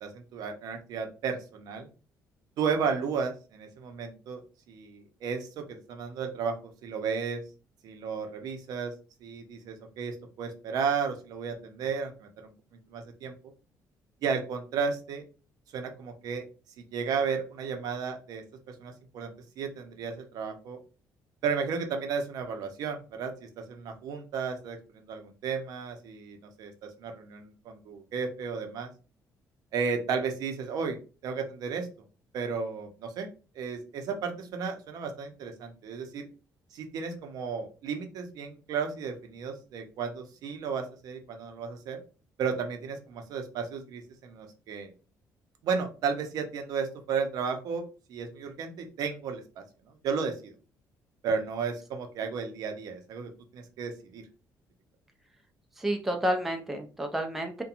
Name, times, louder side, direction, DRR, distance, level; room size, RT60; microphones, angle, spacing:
voice 1, 0.0-1.9 2.6-4.4 4.7-6.6 6.8-7.4 7.8-8.9 9.2-12.5 12.9-13.3 14.2-15.2 15.7-16.4 16.9-19.3 19.6-20.8 21.4-24.8 25.1-28.9 29.7-31.0 31.2-31.9 32.3-33.3 33.6-36.3 36.7-42.0 42.4-44.9 45.6-47.8 48.1-49.6 50.0-50.5 51.2-54.2, right 5 dB, 70° right, 5 dB, 0.6 m, -33 dB
voice 2, 55.8-57.6, right 1 dB, 5° right, 3 dB, 0.4 m, -30 dB
2.8 x 2.2 x 2.4 m, 0.34 s
cardioid pair, 150°, 7 cm